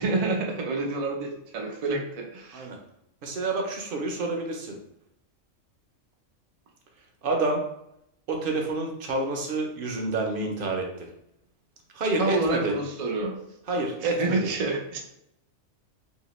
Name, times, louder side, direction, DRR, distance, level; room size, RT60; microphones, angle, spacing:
voice 1, 0.0-2.7 12.2-13.4 13.8-15.0, right 3 dB, 80° right, 0 dB, 0.3 m, -28 dB
voice 2, 3.2-4.8 7.2-7.6 8.3-11.1 11.9-12.7 13.7-14.4, right 2 dB, 55° right, 2 dB, 0.7 m, -28 dB
2.8 x 2.8 x 3.0 m, 0.78 s
omnidirectional pair, 1.3 m